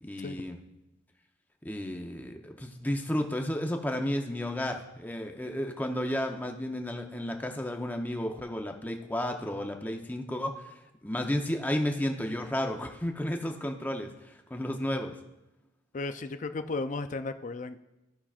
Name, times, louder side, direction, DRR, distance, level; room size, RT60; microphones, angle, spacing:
voice 1, 0.0-0.6 1.6-10.5 11.0-15.1, left 1 dB, 10° left, 3 dB, 0.7 m, -32 dB
voice 2, 15.9-17.8, left 3 dB, 40° left, 10 dB, 0.4 m, -34 dB
14.5 x 5.7 x 2.4 m, 0.96 s
head